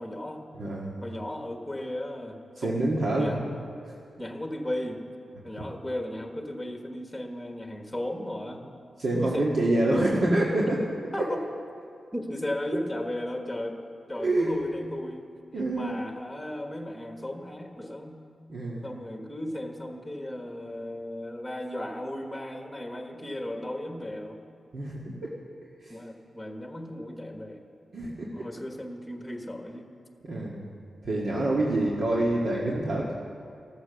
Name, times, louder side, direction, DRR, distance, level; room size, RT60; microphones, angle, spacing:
voice 1, 0.0-0.4 1.0-2.9 3.2-3.4 4.2-5.0 5.4-8.6 9.2-9.6 11.1-11.4 12.1-13.8 14.1-15.2 15.7-18.2 18.8-24.4 25.9-27.6 28.3-29.9, left 1 dB, 5° left, 3 dB, 1.3 m, -35 dB
voice 2, 0.5-0.9 2.6-3.5 3.8-3.9 9.0-10.8 11.2-11.3 14.2-14.5 15.5-16.0 18.5-18.9 24.7-25.4 25.8-26.0 27.9-28.5 30.2-30.7 31.0-33.1, right 1 dB, 60° right, -4 dB, 1.8 m, -26 dB
14.5 x 13.5 x 6.9 m, 2.5 s
wide cardioid pair, 130°, 0 cm